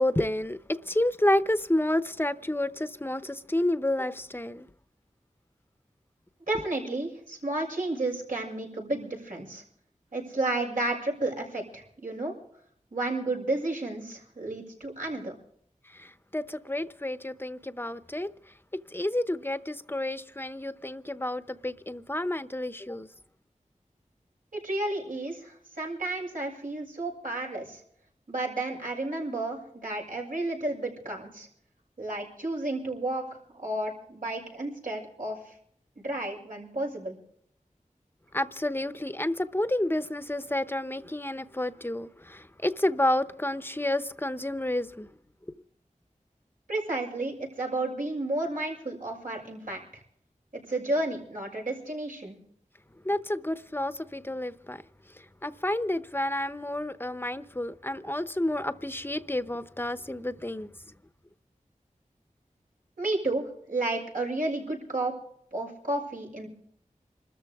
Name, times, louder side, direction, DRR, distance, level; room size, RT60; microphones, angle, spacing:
voice 1, 0.0-4.7 15.9-18.3 18.9-23.1 38.3-45.1 53.0-54.8 55.1-60.7, left 1 dB, 15° left, 0.8 m, -30 dB
voice 2, 6.5-9.6 10.1-12.3 12.9-15.3 24.5-27.8 28.3-31.5 32.0-33.2 33.5-35.5 36.0-37.2 46.7-50.0 50.5-52.4 63.0-65.1 65.5-66.5, right 2 dB, 85° right, 6.5 m, -32 dB
27.0 x 13.5 x 3.6 m
wide cardioid pair, 65°, 14 cm